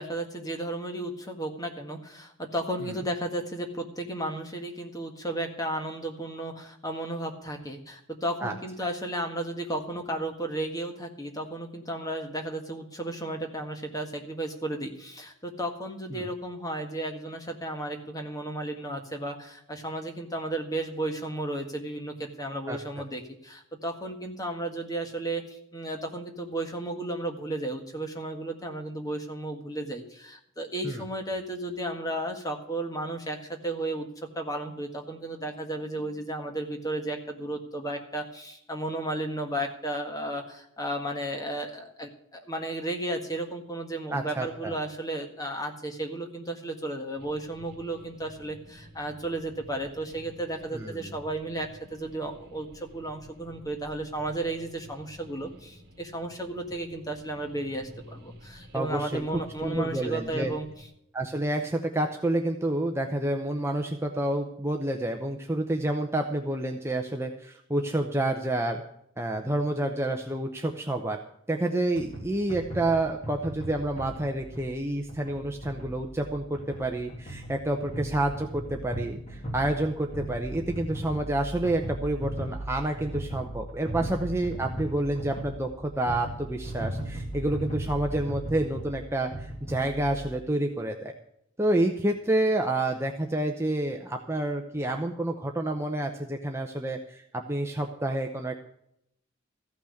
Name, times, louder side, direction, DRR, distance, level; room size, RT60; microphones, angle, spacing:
voice 1, 0.0-34.1 34.3-60.7, right 1 dB, 15° left, 4 dB, 1.6 m, -34 dB
voice 2, 44.1-44.7 50.7-51.0 58.7-59.2 59.6-60.5 61.1-68.8 69.2-71.2 71.5-91.1 91.6-98.6, right 1 dB, 10° right, 3 dB, 0.7 m, -29 dB
sound 1, 47.2-60.9, equal, 50° right, 1.8 m, -51 dB
sound 2, 72.0-90.3, right 1 dB, 30° left, 2.8 m, -37 dB
14.5 x 6.0 x 8.4 m, 0.74 s
head